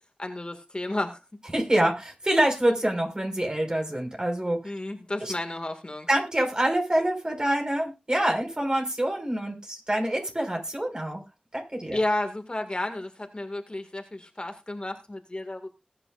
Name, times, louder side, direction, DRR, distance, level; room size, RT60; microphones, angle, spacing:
voice 1, 0.2-1.2 4.6-6.1 11.9-15.7, left 1 dB, 35° left, 5 dB, 2.0 m, -32 dB
voice 2, 1.5-4.6 5.2-5.3 6.1-11.2 11.5-12.0, right 1 dB, 30° right, 2 dB, 5.3 m, -26 dB
20.5 x 9.7 x 2.5 m, 0.26 s
wide cardioid pair, 60°, 3 cm